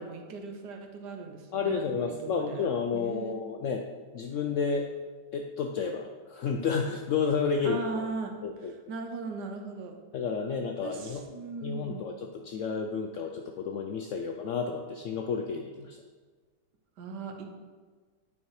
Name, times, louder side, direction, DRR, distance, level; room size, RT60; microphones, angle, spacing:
voice 1, 0.0-2.6 2.9-3.4 7.6-8.4 8.9-10.0 10.8-12.0 17.0-17.5, right 4 dB, 80° right, 4 dB, 1.4 m, -38 dB
voice 2, 1.5-3.8 4.1-4.9 5.3-8.0 8.4-8.7 10.1-11.2 11.6-16.0, left 5 dB, 75° left, 3 dB, 0.7 m, -31 dB
8.9 x 4.2 x 4.7 m, 1.4 s
omnidirectional pair, 1.8 m